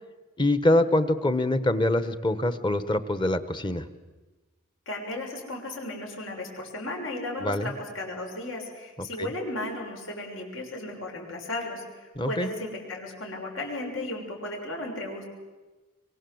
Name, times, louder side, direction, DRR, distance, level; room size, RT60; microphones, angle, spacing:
voice 1, 0.4-3.9 7.4-7.7 9.2-9.3 12.1-12.5, left 1 dB, 25° left, 12 dB, 1.1 m, -24 dB
voice 2, 4.8-15.2, left 1 dB, 75° left, 0 dB, 6.8 m, -35 dB
24.5 x 24.5 x 8.0 m, 1.2 s
head